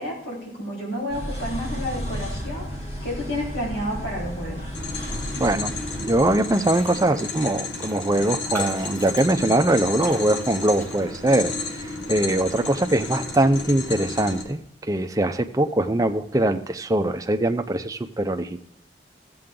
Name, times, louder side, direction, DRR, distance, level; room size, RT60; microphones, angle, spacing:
voice 1, 0.0-2.6 3.0-4.7, left 1 dB, 65° left, -5 dB, 3.9 m, -30 dB
sound 1, 1.1-6.3, equal, 35° left, 3.0 m, -33 dB
sound 2, 4.7-14.4, left 3 dB, 90° left, 1.4 m, -32 dB
voice 2, 5.3-5.7 6.0-18.6, right 1 dB, 20° right, 7 dB, 0.5 m, -22 dB
Raindrop, 6.7-7.0 7.3-7.4 7.8-11.3 11.8-12.0, right 1 dB, 10° left, 2.1 m, -39 dB
15.0 x 7.7 x 3.7 m, 0.79 s
head